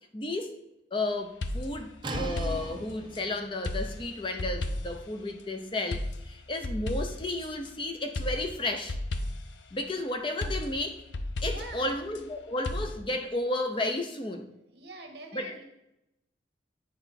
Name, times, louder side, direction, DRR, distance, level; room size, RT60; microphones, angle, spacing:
voice 1, 0.1-0.6 0.9-9.0 9.7-11.0 11.4-14.5 15.3-15.5, left 2 dB, 25° left, 5 dB, 0.6 m, -33 dB
sound 1, 1.4-3.3 3.6-5.1 5.9-7.7 8.1-9.6 10.4-12.3 12.6-13.0, left 1 dB, 90° left, 0.6 m, -34 dB
sound 2, 2.0-7.7, right 2 dB, 25° right, 0.7 m, -43 dB
voice 2, 11.5-11.9 14.7-15.6, right 2 dB, 65° right, 3 dB, 1.4 m, -44 dB
9.1 x 4.5 x 4.1 m, 0.86 s
head